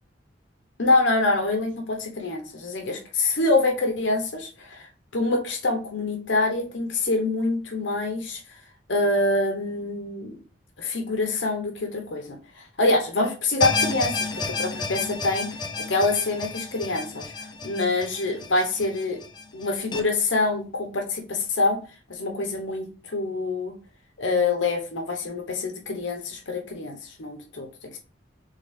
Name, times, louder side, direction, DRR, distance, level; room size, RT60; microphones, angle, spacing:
voice 1, 0.8-8.4 8.9-10.4 10.8-15.5 15.9-19.2 19.5-21.8 22.1-23.7 24.2-28.0, left 2 dB, 75° left, 3 dB, 1.0 m, -25 dB
sound 1, 13.6-20.0, left 4 dB, 25° left, 0.6 m, -31 dB
3.7 x 3.5 x 3.6 m, 0.35 s
head